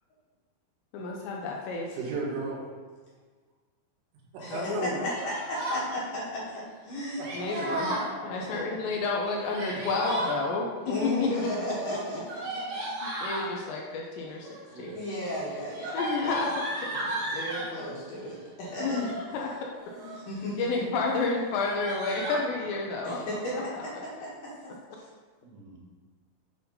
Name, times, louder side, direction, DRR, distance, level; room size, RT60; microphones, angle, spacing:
voice 1, 0.9-2.0 4.5-5.1 7.3-7.9 8.2-10.7 11.2-11.3 11.9-12.0 13.0-15.0 15.9-16.5 18.8-19.7 20.6-23.2 23.5-23.6, left 3 dB, 80° left, -1 dB, 2.8 m, -30 dB
voice 2, 1.9-2.7 4.3-5.3 7.2-7.5 8.1-8.2 9.7-9.8 10.1-10.2 10.6-10.7 12.5-12.7 14.7-15.0 23.1-23.2 23.6-23.7 25.0-25.1 25.4-25.8, right 3 dB, 75° right, -3 dB, 3.8 m, -37 dB
voice 3, 4.4-4.7 5.2-8.0 8.3-8.6 10.8-12.2 14.9-16.4 17.0-19.1 19.9-20.9 23.0-23.5 24.2-24.5, left 1 dB, 55° left, -8 dB, 2.7 m, -34 dB
Yell, 5.1-5.8 7.2-8.1 9.3-10.4 11.7-13.5 14.3-14.7 15.1-17.7 18.6-19.2 19.8-20.3 20.7-20.8 21.1-21.2 21.5-22.4, right 1 dB, 60° right, 1.7 m, -35 dB
8.4 x 4.1 x 5.4 m, 1.4 s
omnidirectional pair, 5.5 m